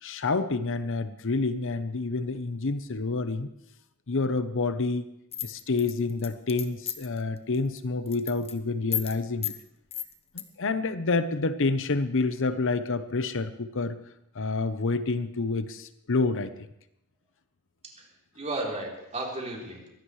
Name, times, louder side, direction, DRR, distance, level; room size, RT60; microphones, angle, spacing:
voice 1, 0.0-3.5 4.1-5.0 5.4-9.5 10.3-14.0 14.3-16.5, left 3 dB, 60° left, 11 dB, 0.8 m, -28 dB
sound 1, 5.3-7.2 7.5-7.8 8.1-8.5 8.9-9.2 9.4-9.6 9.9-10.4, left 10 dB, 30° left, 1.0 m, -33 dB
voice 2, 18.3-19.9, right 2 dB, 30° right, -2 dB, 3.6 m, -34 dB
23.0 x 16.5 x 3.3 m, 0.83 s
head